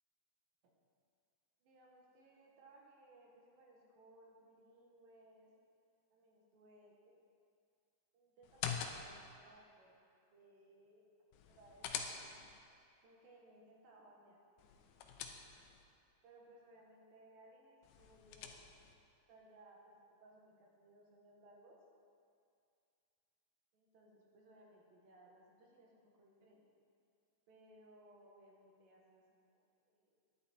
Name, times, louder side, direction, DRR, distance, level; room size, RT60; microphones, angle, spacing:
voice 1, 1.6-5.5 6.1-7.1 8.1-10.0 10.3-11.0 11.3-12.2 13.0-14.4 16.2-18.6 19.3-21.8 23.7-26.6 27.5-30.2, right 1 dB, 70° right, -1 dB, 3.0 m, -63 dB
sound 1, 8.4-9.3 11.3-12.6 14.6-15.8 17.8-18.9, left 7 dB, 80° left, 2.3 m, -45 dB
10.5 x 10.0 x 4.3 m, 2.4 s
omnidirectional pair, 4.4 m